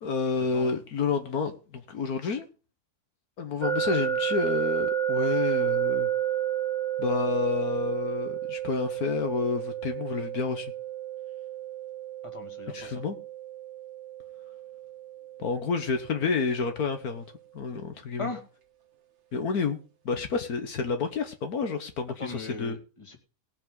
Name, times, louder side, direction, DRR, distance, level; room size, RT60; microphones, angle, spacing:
voice 1, 0.0-2.5 3.4-6.1 7.0-10.7 12.7-13.2 15.4-17.2 17.5-18.3 19.3-22.8, left 4 dB, 70° left, 7 dB, 1.7 m, -29 dB
sound 1, 3.6-16.5, right 10 dB, 50° right, 1.4 m, -31 dB
voice 2, 12.2-13.0 18.2-18.4 22.2-23.2, left 3 dB, 20° left, 4 dB, 2.2 m, -38 dB
18.5 x 8.8 x 3.8 m, 0.35 s
omnidirectional pair, 1.6 m